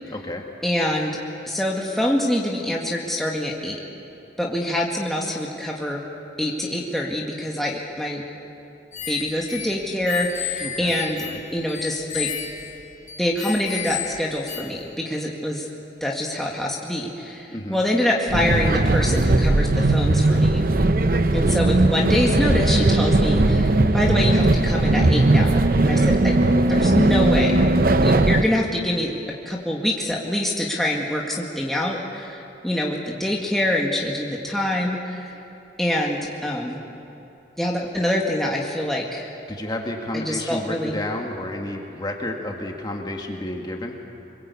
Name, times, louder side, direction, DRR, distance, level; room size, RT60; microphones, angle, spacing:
voice 1, 0.1-0.4 10.6-10.9 11.2-11.4 17.5-17.8 39.5-44.0, left 1 dB, 25° left, 1 dB, 2.0 m, -31 dB
voice 2, 0.6-1.2 1.4-3.8 4.4-6.0 6.4-8.2 9.1-11.2 11.5-12.3 13.2-15.7 16.0-20.6 21.3-26.3 26.7-27.7 28.0-29.1 29.5-35.3 35.8-36.8 37.6-39.3 40.1-41.0, left 1 dB, ahead, -3 dB, 1.9 m, -25 dB
sound 1, 8.9-14.9, left 8 dB, 40° left, 1.5 m, -33 dB
sound 2, 18.3-28.4, right 2 dB, 50° right, 0.8 m, -18 dB
25.5 x 22.0 x 8.3 m, 2.9 s
head